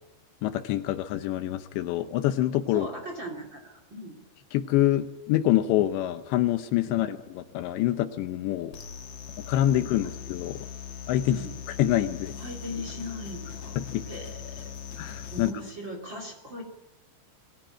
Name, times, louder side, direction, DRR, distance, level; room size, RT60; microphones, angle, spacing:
voice 1, 0.4-2.9 4.5-8.8 9.5-10.6 11.1-11.4 11.8-12.4 13.8-14.0 15.0-15.5, left 13 dB, 80° left, 10 dB, 2.8 m, -26 dB
voice 2, 2.7-4.2 11.3-11.6 12.4-13.8 14.0-14.7 15.3-16.6, equal, 30° right, 3 dB, 2.4 m, -39 dB
sound 1, 8.7-15.5, left 8 dB, 60° left, 1.6 m, -40 dB
22.0 x 15.5 x 8.8 m, 1.1 s
omnidirectional pair, 5.5 m